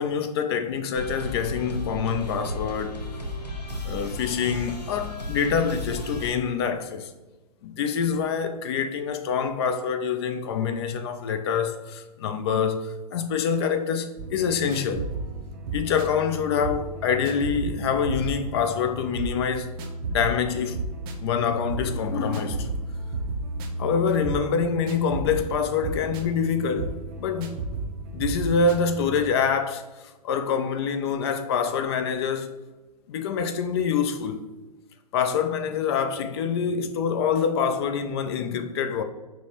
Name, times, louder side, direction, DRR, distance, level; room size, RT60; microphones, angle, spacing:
voice 1, 0.0-3.0 3.8-7.1 7.6-15.1 15.7-19.7 20.1-20.9 21.2-22.7 23.8-27.6 28.1-29.9 30.2-32.5 33.1-34.4 35.1-39.0, left 6 dB, 40° left, 0.4 m, -26 dB
sound 1, 0.9-6.3, left 1 dB, 85° left, 0.9 m, -34 dB
sound 2, 14.2-29.4, right 2 dB, 35° right, 0.5 m, -34 dB
6.2 x 2.1 x 3.0 m
figure-of-eight pair, 115°, 20 cm